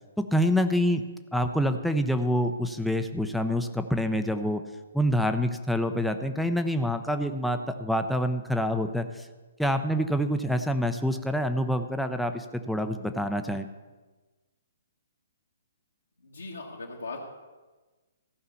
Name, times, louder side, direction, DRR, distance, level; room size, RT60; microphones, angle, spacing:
voice 1, 0.3-1.0 1.3-4.6 4.9-9.3 9.6-13.7, equal, ahead, 7 dB, 0.6 m, -26 dB
voice 2, 16.2-17.2, left 3 dB, 75° left, -3 dB, 1.6 m, -39 dB
14.0 x 5.7 x 7.0 m, 1.2 s
figure-of-eight pair, 125°, 0 cm